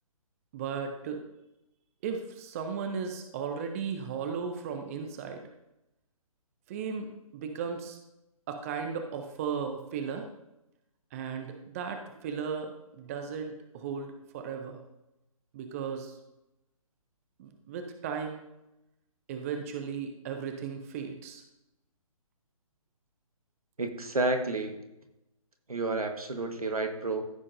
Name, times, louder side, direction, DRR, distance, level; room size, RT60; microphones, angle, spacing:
voice 1, 0.5-1.3 2.0-5.5 6.7-8.0 8.5-10.3 11.1-14.8 15.5-16.2 17.4-18.4 19.3-21.4, right 6 dB, 25° right, 6 dB, 0.7 m, -36 dB
voice 2, 23.8-24.8 25.7-27.3, right 2 dB, 80° right, 5 dB, 1.4 m, -30 dB
14.5 x 6.1 x 2.7 m, 0.91 s
figure-of-eight pair, 140°, 19 cm